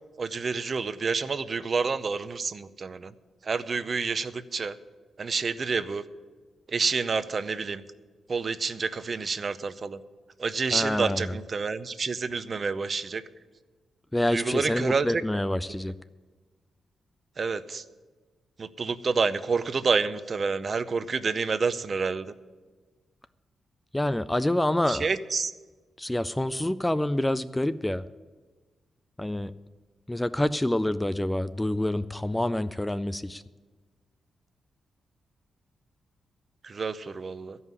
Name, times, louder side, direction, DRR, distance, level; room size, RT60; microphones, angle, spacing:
voice 1, 0.2-3.1 3.4-4.8 5.2-6.0 6.7-7.8 8.3-10.0 10.4-13.2 14.3-15.1 15.7-15.8 17.4-17.8 18.6-22.3 24.9-25.5 36.6-37.6, right 4 dB, 40° right, 13 dB, 0.6 m, -28 dB
voice 2, 10.7-11.3 14.1-15.9 23.9-25.1 26.0-28.0 29.2-29.5 30.1-33.4, left 1 dB, 10° left, 13 dB, 0.3 m, -27 dB
14.0 x 5.5 x 9.5 m, 1.4 s
cardioid pair, 115°, 0 cm